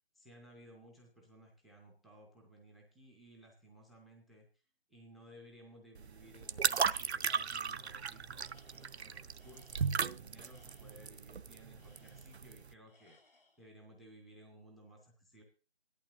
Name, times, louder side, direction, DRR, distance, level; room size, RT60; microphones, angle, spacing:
voice 1, 0.1-4.6 4.9-13.2 13.6-15.4, right 1 dB, ahead, 0 dB, 0.6 m, -58 dB
sound 1, 6.0-12.7, right 6 dB, 75° right, 0.6 m, -36 dB
Tools, 7.5-8.0 8.4-11.1 11.8-12.6 12.9-13.7, left 3 dB, 60° left, 3.7 m, -68 dB
17.0 x 11.5 x 2.6 m, 0.35 s
figure-of-eight pair, 175°, 33 cm